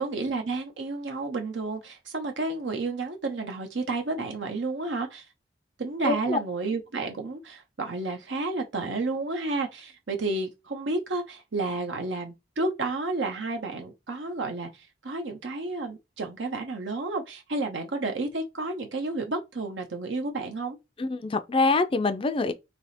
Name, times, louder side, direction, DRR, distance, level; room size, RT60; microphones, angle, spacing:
voice 1, 0.0-5.3 5.8-20.8, right 3 dB, 75° right, 0.8 m, -31 dB
voice 2, 6.0-6.4 21.0-22.5, left 3 dB, 30° left, 0.4 m, -25 dB
3.4 x 2.9 x 4.1 m
head